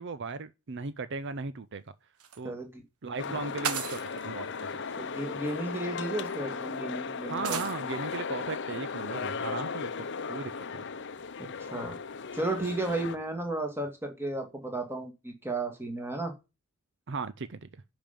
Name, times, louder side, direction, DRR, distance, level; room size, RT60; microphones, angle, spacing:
voice 1, 0.0-1.9 2.4-2.6 3.0-4.8 7.2-10.8 17.1-17.7, right 4 dB, 55° right, 0.6 m, -37 dB
sound 1, 2.2-2.4 3.6-4.2 5.4-5.5 6.3-6.4 7.4-7.8, right 7 dB, 85° right, 1.5 m, -34 dB
voice 2, 2.4-2.8 3.3-3.4 5.0-7.7 11.4-12.0 12.3-16.3, right 2 dB, 10° right, 2.3 m, -34 dB
sound 2, 3.2-13.2, left 5 dB, 55° left, 0.8 m, -36 dB
10.5 x 5.3 x 7.4 m
head